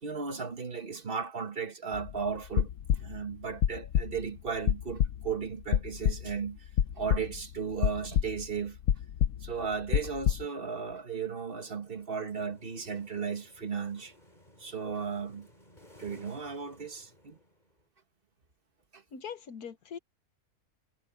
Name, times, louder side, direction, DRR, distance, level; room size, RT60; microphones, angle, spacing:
voice 1, 0.0-2.7 3.0-6.7 7.0-8.8 9.4-14.1 14.6-15.5 16.0-17.4 18.9-19.0, right 6 dB, 35° right, 1.8 m, -35 dB
sound 1, 1.9-2.2 2.4-3.3 3.6-4.3 4.7-5.3 5.7-6.5 6.8-7.4 7.8-8.6 8.9-10.4, left 10 dB, 65° left, 0.9 m, -28 dB
sound 2, 11.4-17.9, left 1 dB, 30° left, 7.8 m, -59 dB
voice 2, 19.1-20.0, left 7 dB, 85° left, 1.8 m, -41 dB
omnidirectional pair, 1.6 m